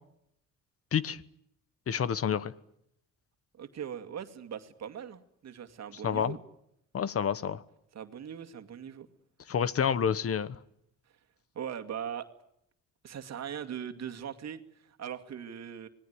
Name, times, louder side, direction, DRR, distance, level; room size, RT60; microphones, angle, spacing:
voice 1, 0.9-1.2 1.9-2.5 6.0-6.4 6.9-7.6 9.5-10.6, left 8 dB, 50° left, 18 dB, 1.2 m, -28 dB
voice 2, 3.6-6.4 7.9-9.1 11.5-12.3 13.0-15.9, right 8 dB, 60° right, 6 dB, 2.3 m, -40 dB
26.5 x 19.5 x 9.6 m, 0.76 s
cardioid pair, 90°, 30 cm